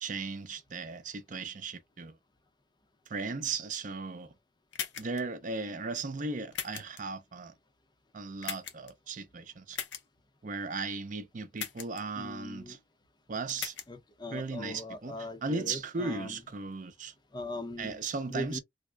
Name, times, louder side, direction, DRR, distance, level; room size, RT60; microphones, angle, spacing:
voice 1, 0.0-2.2 3.1-4.3 5.0-7.5 8.1-9.8 10.4-12.8 13.3-13.8 14.3-17.1 17.8-18.6, right 4 dB, 45° right, 0.5 m, -37 dB
sound 1, 4.7-5.2 6.5-7.0 8.4-8.9 9.7-10.0 11.6-12.0 13.5-13.9, left 8 dB, 70° left, 0.8 m, -38 dB
voice 2, 12.2-12.8 13.9-16.4 17.3-18.0 18.3-18.6, left 1 dB, 25° left, 0.6 m, -40 dB
3.5 x 2.0 x 3.3 m
head